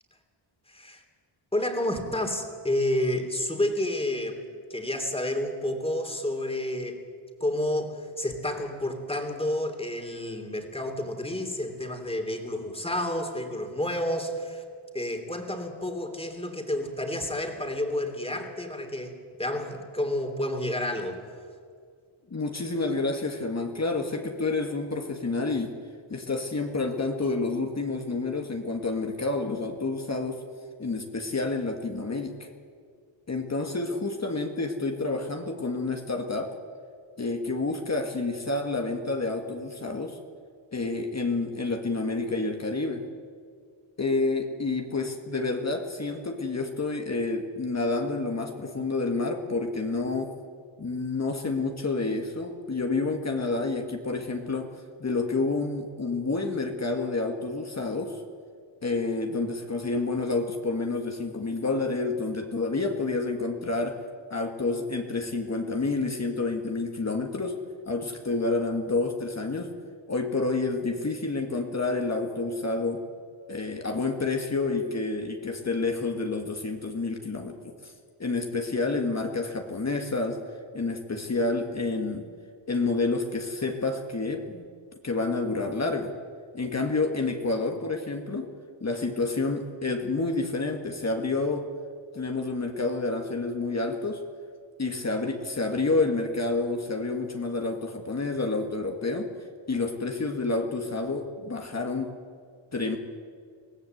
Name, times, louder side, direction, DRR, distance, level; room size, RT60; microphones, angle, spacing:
voice 1, 0.7-1.0 1.5-4.4 4.7-7.0 7.4-14.6 14.9-21.2, left 1 dB, 10° left, 5 dB, 3.1 m, -30 dB
voice 2, 22.3-25.7 26.1-30.4 30.8-32.5 33.3-36.6 37.2-40.2 40.7-43.0 44.0-50.3 50.8-54.7 55.0-58.2 58.8-64.1 64.3-69.7 70.1-73.0 73.5-77.9 78.2-80.4 80.7-82.3 82.7-84.7 85.0-86.1 86.5-88.5 88.8-91.7 92.1-94.3 94.8-99.3 99.7-102.1 102.7-103.0, left 3 dB, 30° left, 3 dB, 1.9 m, -29 dB
24.5 x 17.5 x 8.1 m, 2.1 s
wide cardioid pair, 115°, 50 cm